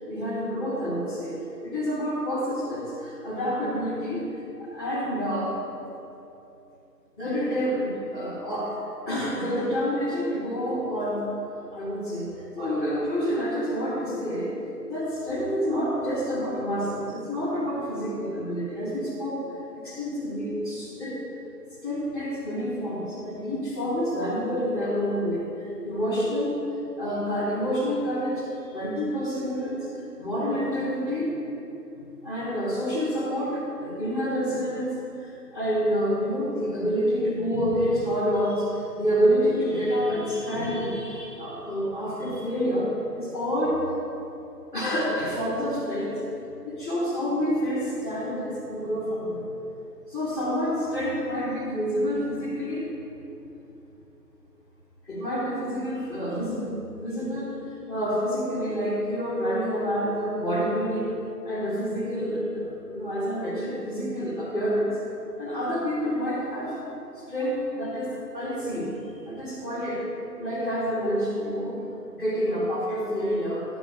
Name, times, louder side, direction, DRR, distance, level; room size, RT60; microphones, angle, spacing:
voice 1, 0.1-4.2 4.6-5.6 7.2-8.8 9.0-11.2 11.7-12.3 12.5-14.5 14.9-19.4 19.7-21.2 21.8-26.6 27.0-29.8 30.2-31.3 32.2-43.8 44.7-46.2 46.6-49.4 50.1-52.9 55.1-57.5 57.9-61.1 61.4-65.0 65.4-66.8 67.2-68.9 69.2-70.0 70.4-71.8 72.1-73.6, equal, ahead, -23 dB, 1.8 m, -28 dB
11.0 x 6.1 x 5.1 m, 2.9 s
figure-of-eight pair, 170°, 49 cm